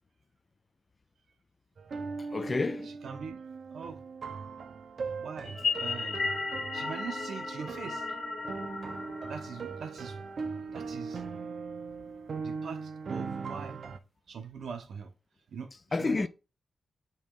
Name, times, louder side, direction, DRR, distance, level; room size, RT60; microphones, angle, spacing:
sound 1, 1.8-14.0, right 4 dB, 50° right, 0.7 m, -39 dB
voice 1, 2.3-2.9 8.5-8.6 15.9-16.3, left 3 dB, 25° left, 0.3 m, -29 dB
voice 2, 2.8-3.4 3.7-4.0 5.1-6.3 6.7-8.1 9.3-10.2 10.7-11.2 12.4-13.8 14.3-15.1 15.5-16.3, right 6 dB, 70° right, 1.0 m, -42 dB
sound 2, 5.4-10.0, left 4 dB, 50° left, 1.4 m, -35 dB
5.8 x 4.2 x 4.6 m
wide cardioid pair, 170°, 0 cm